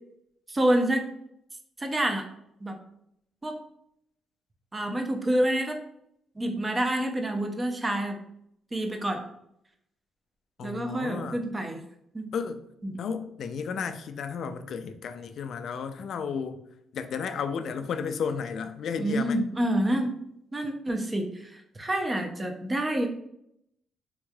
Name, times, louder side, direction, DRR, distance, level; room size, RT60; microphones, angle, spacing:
voice 1, 0.5-1.1 1.8-2.2 2.6-2.8 3.4-3.6 4.7-5.8 6.4-8.2 8.7-9.2 10.6-11.8 12.1-12.3 12.8-13.0 19.0-20.2 20.5-23.1, right 1 dB, 20° right, 4 dB, 0.6 m, -27 dB
voice 2, 10.6-11.4 12.3-12.6 13.0-16.6 16.9-19.4, left 6 dB, 65° left, 9 dB, 0.3 m, -33 dB
3.5 x 3.1 x 2.3 m, 0.77 s
cardioid pair, 90°, 0 cm